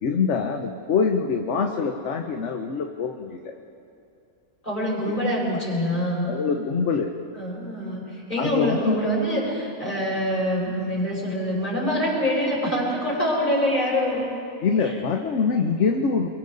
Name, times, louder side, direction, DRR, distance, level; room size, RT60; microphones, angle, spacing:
voice 1, 0.0-3.5 5.1-5.2 6.2-7.1 8.4-9.0 14.6-16.3, left 5 dB, 55° left, 4 dB, 1.2 m, -24 dB
voice 2, 4.6-6.3 7.3-14.3, equal, 30° left, -4 dB, 6.3 m, -25 dB
29.0 x 23.5 x 4.0 m, 2.6 s
omnidirectional pair, 1.6 m